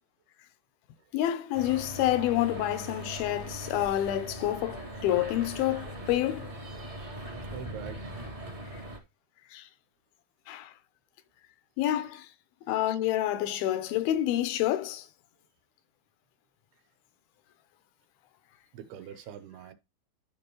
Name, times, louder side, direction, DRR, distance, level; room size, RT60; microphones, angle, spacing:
voice 1, 1.1-6.5 9.5-9.7 10.5-10.7 11.8-12.3 12.7-15.1, left 13 dB, 80° left, 2.6 m, -28 dB
sound 1, 1.5-9.0, right 1 dB, 25° right, 1.3 m, -40 dB
voice 2, 7.5-8.0 12.8-12.9 18.7-19.7, right 9 dB, 90° right, 2.9 m, -43 dB
12.0 x 5.2 x 3.0 m
omnidirectional pair, 4.5 m